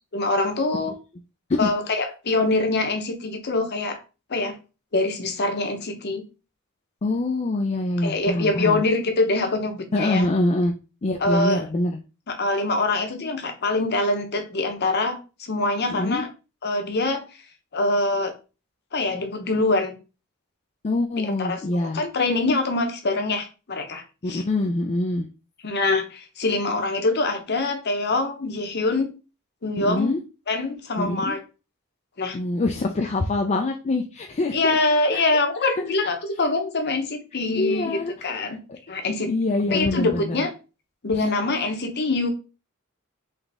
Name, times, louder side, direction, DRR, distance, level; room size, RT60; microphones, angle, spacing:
voice 1, 0.1-0.9 1.6-4.0 4.3-4.6 4.9-6.2 8.0-10.3 11.2-11.6 12.3-16.3 16.6-17.2 17.7-18.3 18.9-20.0 21.2-24.4 25.6-29.1 29.6-30.2 30.5-31.4 32.2-32.4 34.5-38.6 38.9-39.3 39.7-40.5 41.0-42.3, left 2 dB, 50° left, 0.8 m, -24 dB
voice 2, 7.0-8.8 9.9-10.7 11.0-12.0 15.9-16.2 20.8-22.0 24.2-25.3 29.8-30.2 31.0-31.3 32.3-34.7 35.1-35.2 37.6-38.3 39.3-40.4, left 2 dB, 30° left, 0.4 m, -24 dB
4.0 x 3.2 x 3.5 m
head